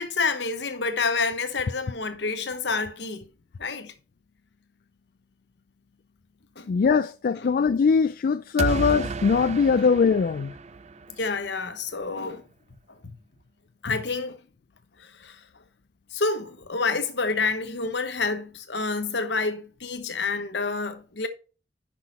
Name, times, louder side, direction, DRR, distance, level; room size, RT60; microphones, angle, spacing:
voice 1, 0.0-3.3 3.6-3.9 6.6-6.7 7.4-7.5 8.7-8.8 11.2-12.4 13.8-14.4 15.0-15.4 16.1-21.3, left 4 dB, 70° left, 1.1 m, -28 dB
voice 2, 6.7-10.5, left 5 dB, 55° left, 0.3 m, -21 dB
sound 1, 8.6-11.5, right 4 dB, 40° right, 0.4 m, -32 dB
6.1 x 5.7 x 5.3 m
head